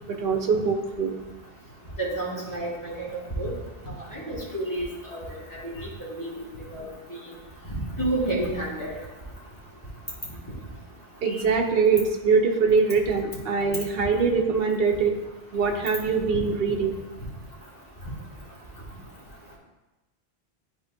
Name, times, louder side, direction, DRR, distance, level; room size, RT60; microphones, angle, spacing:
voice 1, 0.1-1.1 11.2-15.1 15.5-17.0, right 5 dB, 70° right, 3 dB, 1.0 m, -23 dB
voice 2, 2.0-3.1 3.4-3.5 4.1-5.2 6.2-6.3 6.7-6.9 8.0-8.9 16.3-16.4, right 1 dB, 20° left, -7 dB, 2.0 m, -29 dB
11.0 x 4.3 x 2.7 m, 1.1 s
omnidirectional pair, 1.0 m